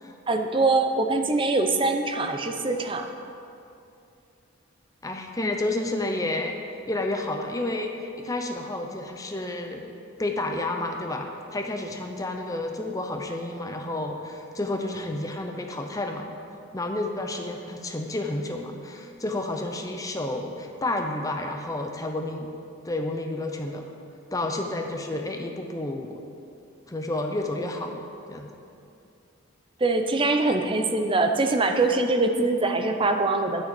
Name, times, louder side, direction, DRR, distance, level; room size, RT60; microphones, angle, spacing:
voice 1, 0.3-3.1 29.8-33.7, right 2 dB, 25° right, 5 dB, 0.6 m, -23 dB
voice 2, 5.0-6.6 6.9-9.9 10.2-16.3 16.7-22.5 22.8-23.9 24.3-26.1 26.9-28.0 28.3-28.5, left 2 dB, 15° left, 3 dB, 0.6 m, -30 dB
8.7 x 6.6 x 7.6 m, 2.6 s
head